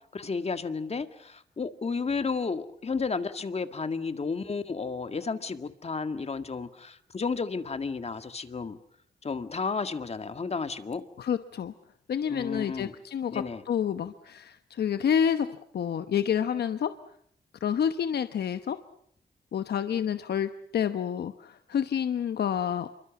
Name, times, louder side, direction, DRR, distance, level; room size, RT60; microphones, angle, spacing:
voice 1, 0.1-8.8 9.2-11.1 12.3-12.9 13.3-13.6, left 4 dB, 40° left, 9 dB, 1.9 m, -32 dB
voice 2, 11.2-11.7 12.1-15.5 15.7-16.9 17.6-18.8 19.5-22.9, left 8 dB, 75° left, 10 dB, 1.0 m, -28 dB
27.5 x 24.0 x 7.3 m, 0.67 s
cardioid pair, 100°, 17 cm